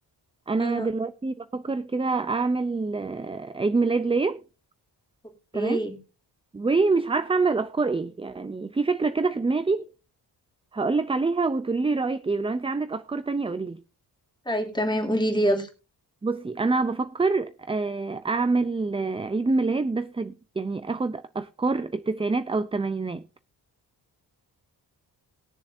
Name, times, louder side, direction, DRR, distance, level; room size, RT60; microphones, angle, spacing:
voice 1, 0.5-4.4 5.5-5.8 6.5-9.9 10.7-13.8 16.2-23.2, right 3 dB, 15° right, 0.5 m, -26 dB
voice 2, 5.5-6.0 14.4-15.7, equal, 10° left, 2.9 m, -25 dB
21.0 x 7.1 x 2.6 m
wide cardioid pair, 130°, 41 cm